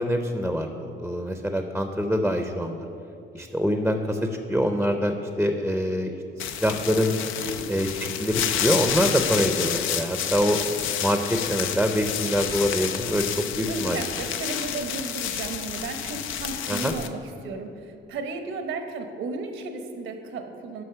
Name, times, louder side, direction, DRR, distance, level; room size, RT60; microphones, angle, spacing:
voice 1, 0.0-2.9 3.3-7.1 7.7-10.6 11.0-14.0 16.7-16.9, equal, ahead, 6 dB, 0.5 m, -25 dB
sound 1, 6.4-17.1, left 9 dB, 90° left, 0.5 m, -29 dB
voice 2, 13.6-20.8, right 3 dB, 80° right, 6 dB, 1.0 m, -34 dB
7.9 x 6.0 x 5.7 m, 2.7 s
cardioid pair, 90°, 20 cm